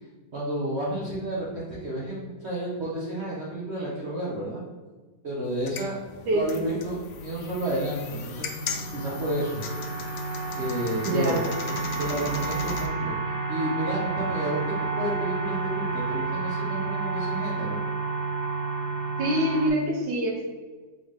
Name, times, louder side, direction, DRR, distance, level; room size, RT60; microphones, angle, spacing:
voice 1, 0.3-4.6 5.2-6.0 6.3-8.5 8.9-9.6 10.5-11.4 12.0-13.1 13.5-17.8, right 1 dB, 50° right, -6 dB, 0.8 m, -31 dB
sound 1, 5.5-12.9, left 5 dB, 85° left, 0.7 m, -37 dB
voice 2, 6.3-6.6 11.1-11.4 19.2-20.5, right 1 dB, 85° right, -3 dB, 1.4 m, -25 dB
sound 2, 7.7-19.7, right 3 dB, 70° right, 1.4 m, -31 dB
3.9 x 3.3 x 3.5 m, 1.3 s
omnidirectional pair, 2.0 m